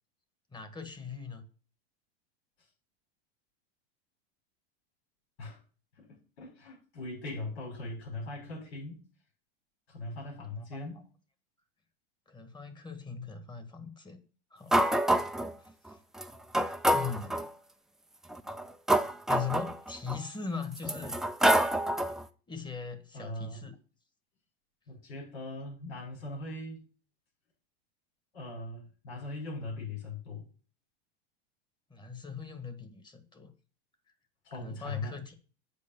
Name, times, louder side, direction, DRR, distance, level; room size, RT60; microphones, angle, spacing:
voice 1, 0.5-1.4 10.6-10.7 12.3-14.2 14.5-14.8 15.6-16.0 16.9-17.4 19.3-21.2 22.0-22.2 22.5-23.8 31.9-33.5 34.6-35.3, left 6 dB, 15° left, 8 dB, 1.7 m, -40 dB
voice 2, 5.9-9.0 9.9-11.0 23.1-23.7 24.9-26.8 28.3-30.5 34.4-35.2, left 2 dB, 80° left, -1 dB, 6.4 m, -40 dB
sound 1, 14.7-15.5 16.2-16.3 16.5-17.5 18.3-20.2 20.8-22.2, right 1 dB, ahead, 0.4 m, -27 dB
8.4 x 5.2 x 7.0 m, 0.38 s
supercardioid pair, 125°, 32 cm